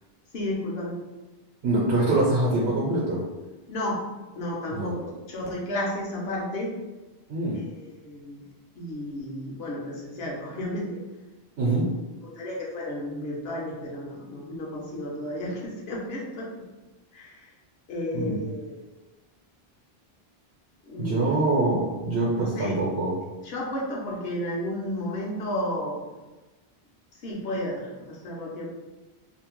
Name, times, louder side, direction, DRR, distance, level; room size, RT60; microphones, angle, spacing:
voice 1, 0.3-1.0 3.7-4.1 4.3-6.7 7.5-8.4 8.8-11.0 11.6-11.8 12.2-16.6 17.1-17.5 17.9-18.8 20.9-21.5 22.3-22.8 23.4-26.0 27.2-28.7, left 1 dB, 75° left, -3 dB, 1.0 m, -32 dB
voice 2, 1.6-3.2 4.7-4.9 7.3-7.6 11.6-11.9 18.1-18.4 21.0-23.1, right 2 dB, 75° right, -4 dB, 0.9 m, -24 dB
2.7 x 2.1 x 2.9 m, 1.1 s
omnidirectional pair, 1.1 m